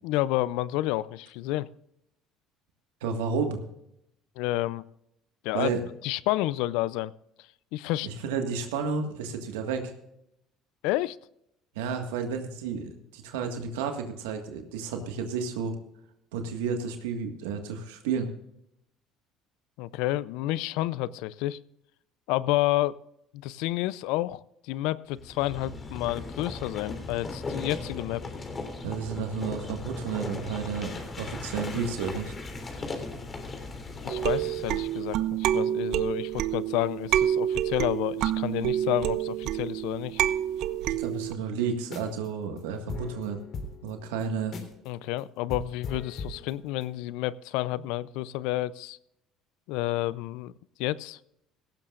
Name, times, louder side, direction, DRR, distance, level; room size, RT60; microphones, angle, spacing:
voice 1, 0.0-1.7 4.4-4.8 5.4-5.7 6.0-7.1 7.7-8.1 10.8-11.2 19.8-21.6 22.3-23.0 23.3-28.2 34.0-40.2 44.9-49.0 49.7-50.5 50.8-51.2, left 16 dB, 75° left, 20 dB, 0.5 m, -30 dB
voice 2, 3.0-3.6 5.5-5.8 8.0-9.9 11.7-15.7 16.3-18.3 28.8-32.3 40.8-43.4 43.8-44.6, right 5 dB, 90° right, 5 dB, 1.7 m, -31 dB
sound 1, 25.1-35.1, left 3 dB, 30° left, 3.3 m, -38 dB
sound 2, 34.1-41.3, right 11 dB, 65° right, 0.6 m, -28 dB
sound 3, 41.8-42.3 42.6-42.7 42.9-44.9 45.2-45.3 45.5-46.9, left 3 dB, 50° left, 3.3 m, -39 dB
17.5 x 15.5 x 2.5 m, 0.78 s
supercardioid pair, 80°, 0 cm